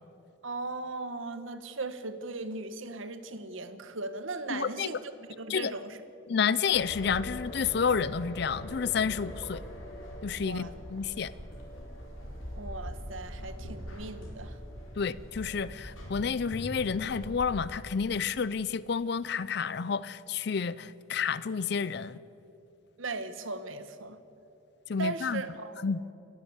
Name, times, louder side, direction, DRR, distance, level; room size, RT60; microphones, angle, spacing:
voice 1, 0.4-6.0 10.4-10.7 12.6-14.6 23.0-24.2 25.0-25.8, right 3 dB, 80° right, 11 dB, 1.3 m, -38 dB
voice 2, 4.5-4.9 5.5-5.7 6.3-9.6 10.2-11.3 15.0-22.2 24.9-25.4 25.8-26.0, left 6 dB, 55° left, 18 dB, 0.5 m, -30 dB
sound 1, 6.7-17.6, equal, 90° left, 4.4 m, -42 dB
29.0 x 11.5 x 8.1 m, 2.8 s
head